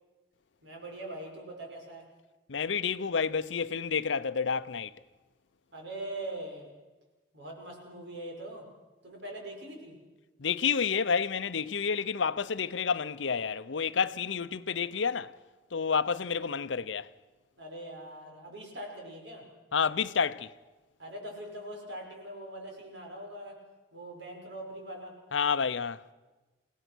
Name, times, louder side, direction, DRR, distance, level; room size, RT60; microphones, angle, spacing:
voice 1, 0.6-2.1 5.7-6.7 7.3-8.7 9.0-10.0 17.6-19.5 21.0-23.6 23.9-25.2, right 1 dB, 70° right, 5.9 m, -42 dB
voice 2, 2.5-4.9 10.4-15.3 15.7-17.1 19.7-20.5 25.3-26.0, left 6 dB, 80° left, 0.7 m, -29 dB
29.5 x 17.0 x 6.2 m
head